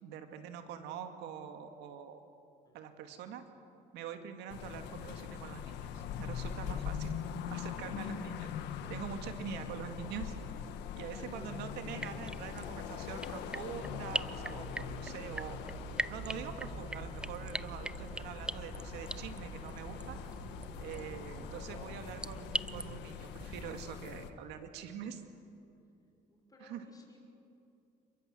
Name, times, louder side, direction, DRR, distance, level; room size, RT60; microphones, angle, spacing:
voice 1, 0.0-2.2 2.7-3.4 3.9-7.1 7.5-8.5 8.9-10.3 11.0-15.6 16.1-20.2 20.8-25.2 26.6-26.8, right 8 dB, 90° right, 6 dB, 2.2 m, -44 dB
sound 1, 4.5-24.3, left 8 dB, 85° left, 1.6 m, -42 dB
voice 2, 10.9-11.7 12.6-12.8 26.3-27.3, left 1 dB, 20° left, 2 dB, 5.7 m, -56 dB
sound 2, 11.9-23.7, right 1 dB, 5° right, 0.6 m, -43 dB
sound 3, 13.3-23.0, right 11 dB, 55° right, 0.6 m, -50 dB
28.5 x 22.5 x 7.8 m, 2.6 s
cardioid pair, 110°, 17 cm